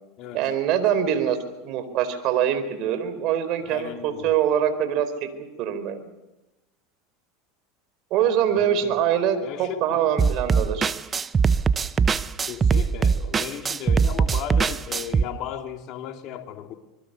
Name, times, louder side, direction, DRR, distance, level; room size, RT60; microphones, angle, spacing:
voice 1, 0.3-1.4 1.6-5.3 5.6-6.1 8.1-10.9, right 9 dB, 55° right, 10 dB, 4.4 m, -24 dB
voice 2, 3.7-4.3 8.5-8.9 9.4-10.0 12.5-16.7, left 10 dB, 50° left, 4 dB, 3.3 m, -36 dB
sound 1, 10.2-15.2, right 5 dB, 25° right, 0.9 m, -21 dB
26.0 x 21.0 x 6.9 m, 1.0 s
hypercardioid pair, 90°, 0 cm